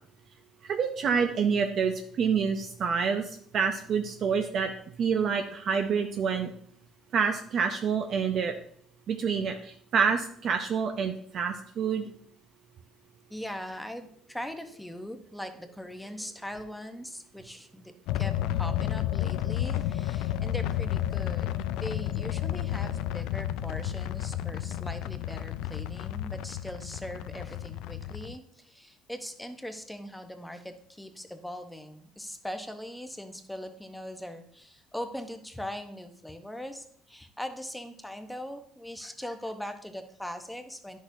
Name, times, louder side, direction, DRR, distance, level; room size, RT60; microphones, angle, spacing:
voice 1, 0.6-4.7 5.0-6.5 7.1-8.6 9.1-12.1, right 6 dB, 50° right, 5 dB, 0.6 m, -27 dB
voice 2, 13.3-41.0, equal, 5° left, 7 dB, 0.8 m, -40 dB
sound 1, 18.1-28.3, left 12 dB, 80° left, 0.3 m, -31 dB
9.8 x 6.4 x 2.6 m, 0.62 s
cardioid pair, 115°, 0 cm